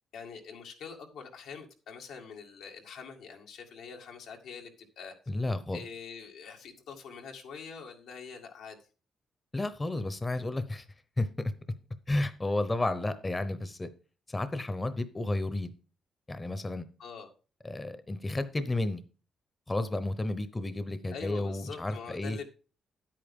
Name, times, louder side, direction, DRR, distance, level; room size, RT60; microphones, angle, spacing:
voice 1, 0.1-4.7 5.0-5.1 5.7-8.8 17.0-17.3 21.1-22.4, left 6 dB, 90° left, 1 dB, 2.0 m, -44 dB
voice 2, 5.3-5.8 9.5-10.8 11.2-11.5 12.1-13.9 14.3-15.7 16.3-16.9 17.6-19.0 19.7-22.4, left 2 dB, 20° left, 12 dB, 0.8 m, -32 dB
9.6 x 8.7 x 3.7 m, 0.35 s
cardioid pair, 100°, 0 cm